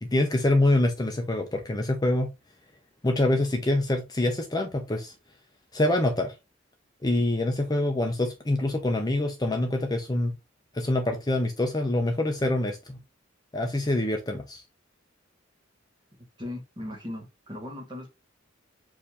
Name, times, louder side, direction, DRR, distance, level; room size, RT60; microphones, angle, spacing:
voice 1, 0.0-2.3 3.0-5.1 5.7-6.3 7.0-10.3 10.7-13.0 13.5-14.6, left 1 dB, 20° left, 0.6 m, -25 dB
voice 2, 16.4-18.1, left 1 dB, 25° right, 1.4 m, -38 dB
4.8 x 2.7 x 3.5 m
head